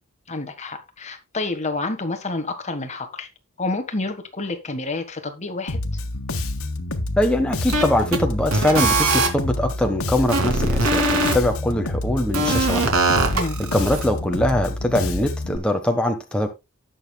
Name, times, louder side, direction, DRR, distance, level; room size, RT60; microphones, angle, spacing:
voice 1, 0.3-3.3 3.6-5.8 13.3-13.6, left 2 dB, 35° left, 1.5 m, -29 dB
Bass guitar, 5.7-15.6, left 2 dB, 85° left, 1.4 m, -28 dB
voice 2, 7.2-12.9 13.7-16.5, left 1 dB, 5° left, 1.2 m, -22 dB
sound 1, 7.7-8.2 8.5-9.3 10.3-11.3 12.3-14.0, right 2 dB, 90° right, 2.8 m, -21 dB
18.0 x 6.6 x 2.3 m
head